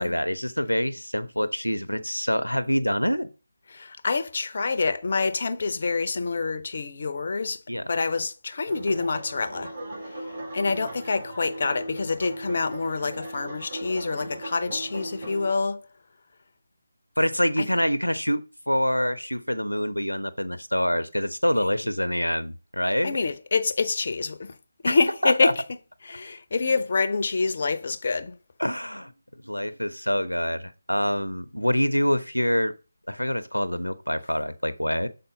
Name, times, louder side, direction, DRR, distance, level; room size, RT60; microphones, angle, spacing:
voice 1, 0.0-3.3 7.7-7.9 17.2-23.2 24.9-25.0 25.2-25.5 28.6-29.1 29.4-32.7 33.1-35.1, equal, 85° left, 0.7 m, -26 dB
voice 2, 3.7-7.6 7.9-9.7 10.0-10.2 10.5-15.9 17.6-17.7 23.0-24.6 24.8-25.6 26.0-28.4, left 4 dB, 40° left, 0.6 m, -27 dB
sound 1, 8.7-15.5, right 1 dB, 40° right, 3.3 m, -38 dB
6.7 x 4.1 x 3.8 m
figure-of-eight pair, 155°, 0 cm